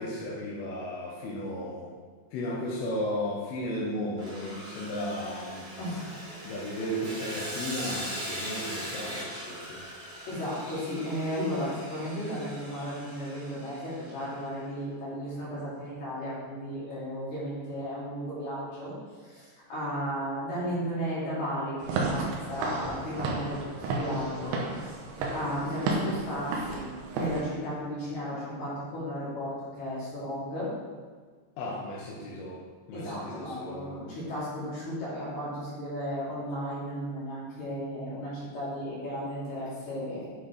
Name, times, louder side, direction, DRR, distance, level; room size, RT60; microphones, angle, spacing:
voice 1, 0.0-1.9 2.3-5.6 6.4-9.8 31.6-32.6 32.9-34.0, left 1 dB, 70° left, -5 dB, 2.6 m, -35 dB
Sawing, 4.2-14.4, equal, 55° right, 0.9 m, -40 dB
voice 2, 5.8-6.2 10.3-18.9 19.2-25.0 25.3-26.9 27.1-30.7 32.9-40.4, equal, 45° left, -10 dB, 3.3 m, -34 dB
Walk footsteps / Siren, 21.8-27.4, right 3 dB, 80° right, 3.3 m, -32 dB
9.4 x 6.0 x 3.4 m, 1.5 s
omnidirectional pair, 5.4 m